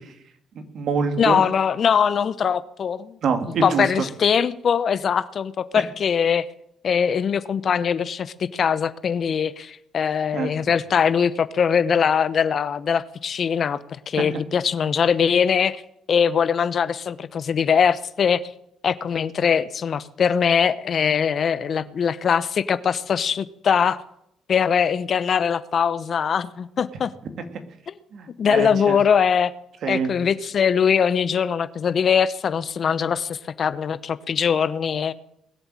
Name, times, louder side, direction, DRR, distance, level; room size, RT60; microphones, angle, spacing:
voice 1, 0.5-1.4 3.2-4.0 10.3-10.5 14.2-14.3 21.7-21.8 28.1-29.0 29.8-30.1, right 5 dB, 65° right, 6 dB, 2.2 m, -25 dB
voice 2, 1.2-3.2 3.6-6.5 6.8-15.8 16.1-18.4 18.8-24.0 24.5-27.1 27.9-28.0 28.4-29.5 29.9-35.1, left 7 dB, 55° left, 15 dB, 0.9 m, -22 dB
20.5 x 8.0 x 7.7 m, 0.77 s
hypercardioid pair, 55°, 0 cm